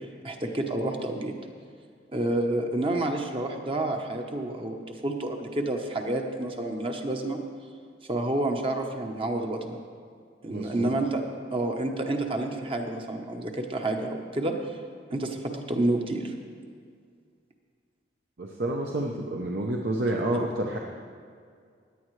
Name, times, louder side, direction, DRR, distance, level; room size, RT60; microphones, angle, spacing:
voice 1, 0.2-1.3 2.1-7.4 8.1-9.8 10.4-11.2 11.5-14.5 15.1-16.3, right 2 dB, 30° right, 3 dB, 0.9 m, -29 dB
voice 2, 10.5-10.9 18.4-20.8, right 1 dB, 60° right, 0 dB, 0.8 m, -29 dB
16.5 x 10.0 x 3.2 m, 2.2 s
head